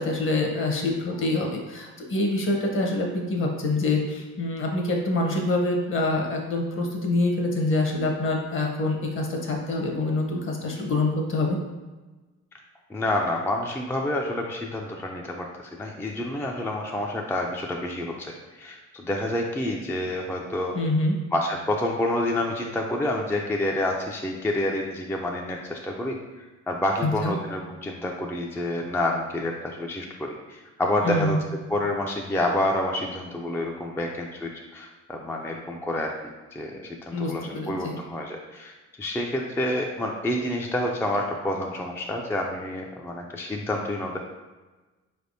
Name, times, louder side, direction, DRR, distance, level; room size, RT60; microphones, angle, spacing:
voice 1, 0.0-11.6 20.7-21.2 27.0-27.3 31.0-31.4 37.1-38.0, left 2 dB, 45° left, 1 dB, 0.9 m, -26 dB
voice 2, 12.9-20.8 21.3-31.4 31.7-36.1 36.5-44.2, left 1 dB, 10° left, 0 dB, 0.3 m, -28 dB
4.2 x 3.4 x 2.6 m, 1.2 s
cardioid pair, 90°, 30 cm